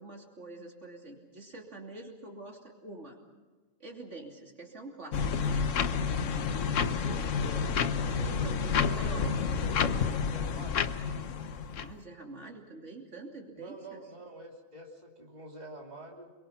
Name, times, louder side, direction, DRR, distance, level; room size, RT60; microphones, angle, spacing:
voice 1, 0.0-3.2 3.8-5.6 8.2-9.3 11.8-14.0, right 2 dB, 65° right, 0 dB, 3.3 m, -46 dB
sound 1, 5.1-11.9, left 6 dB, 70° left, 1.3 m, -29 dB
voice 2, 6.5-10.8 13.5-16.3, right 1 dB, 30° right, -1 dB, 3.0 m, -47 dB
27.5 x 24.0 x 5.8 m, 1.3 s
omnidirectional pair, 1.3 m